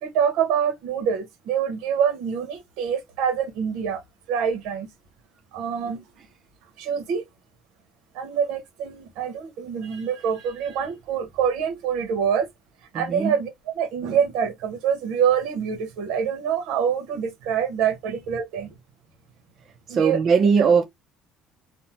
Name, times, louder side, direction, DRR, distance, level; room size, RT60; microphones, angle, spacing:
voice 1, 0.0-4.0 4.3-4.9 5.5-6.0 6.8-7.3 8.1-12.5 12.9-13.5 13.7-18.7 19.9-20.2, right 7 dB, 80° right, 0.9 m, -25 dB
voice 2, 12.9-13.3 19.9-20.8, right 5 dB, 40° right, 0.4 m, -19 dB
2.6 x 2.0 x 2.8 m
cardioid pair, 135°, 0 cm